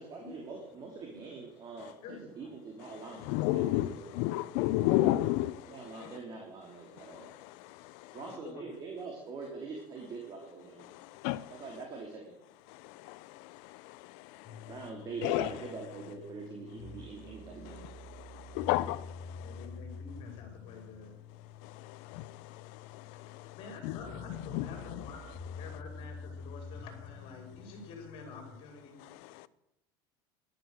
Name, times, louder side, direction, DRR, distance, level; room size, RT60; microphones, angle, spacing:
voice 1, 0.0-4.1 5.7-7.3 8.1-10.9 11.5-12.4 14.6-17.9, right 4 dB, 35° right, 3.0 m, -44 dB
voice 2, 2.0-2.6 6.0-6.1 8.1-8.7 19.4-21.1 23.5-29.0, left 4 dB, 50° left, 5.4 m, -49 dB
voice 3, 3.3-3.9 4.1-5.6 11.2-11.4 13.1-13.2 15.2-15.5 18.6-19.0 22.1-22.2 23.8-23.9 24.5-24.6, left 16 dB, 65° left, 0.8 m, -28 dB
sound 1, 14.4-28.5, left 4 dB, 20° left, 2.5 m, -48 dB
13.5 x 11.5 x 6.7 m
supercardioid pair, 140°, 12 cm